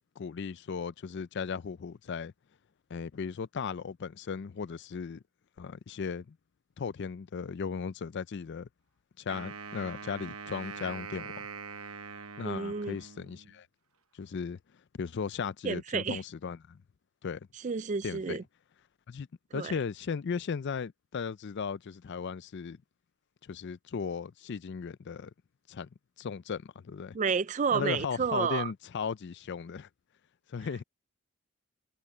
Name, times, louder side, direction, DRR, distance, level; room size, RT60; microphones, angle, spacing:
voice 1, 0.2-2.3 2.9-5.2 5.6-6.4 6.8-8.7 9.2-11.3 12.4-13.7 14.1-14.6 15.0-16.8 17.2-17.5 18.0-18.4 19.1-19.3 19.5-22.8 23.4-25.3 25.7-25.9 26.2-27.2 27.7-29.9 30.5-30.8, left 6 dB, 50° left, 0.4 m, -36 dB
Wind instrument woodwind instrument, 9.3-13.6, right 5 dB, 75° right, 1.0 m, -43 dB
voice 2, 12.4-13.0 15.6-16.2 17.6-18.4 19.5-19.7 27.1-28.7, right 5 dB, 35° right, 0.4 m, -30 dB
head